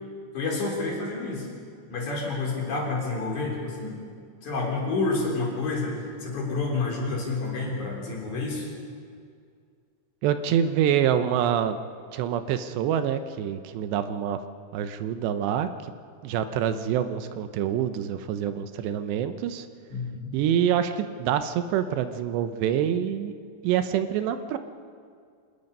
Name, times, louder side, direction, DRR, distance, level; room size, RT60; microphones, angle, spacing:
voice 1, 0.3-1.5 1.9-4.0 4.4-5.9 6.2-8.7 19.9-20.3, left 3 dB, 45° left, -2 dB, 4.9 m, -29 dB
voice 2, 10.2-11.8 12.1-14.4 14.7-15.7 16.2-19.7 20.3-23.3 23.6-24.6, right 9 dB, 80° right, 10 dB, 2.9 m, -26 dB
26.0 x 19.5 x 5.4 m, 2.2 s
omnidirectional pair, 5.0 m